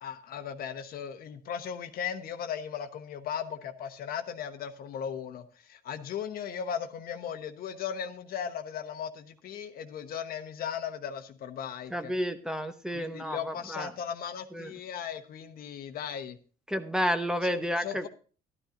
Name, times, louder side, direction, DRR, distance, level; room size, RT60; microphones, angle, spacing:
voice 1, 0.0-12.1 12.9-16.4 17.4-18.1, left 8 dB, 60° left, 1.1 m, -37 dB
voice 2, 11.9-13.9 14.5-14.7 16.7-18.1, equal, 5° right, 1.0 m, -31 dB
13.0 x 12.0 x 2.6 m
cardioid pair, 110°, 17 cm